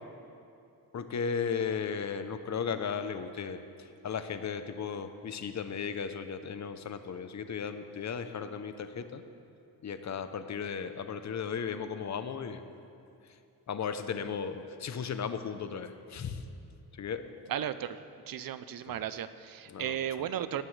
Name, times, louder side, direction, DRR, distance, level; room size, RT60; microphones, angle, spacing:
voice 1, 0.9-9.3 9.8-12.6 13.2-13.4 13.7-16.4 16.9-17.3 18.9-19.0 19.7-20.3, left 6 dB, 45° left, 9 dB, 0.7 m, -36 dB
voice 2, 17.5-20.6, right 10 dB, 60° right, 13 dB, 0.6 m, -35 dB
17.5 x 12.5 x 3.3 m, 2.6 s
wide cardioid pair, 130°, 39 cm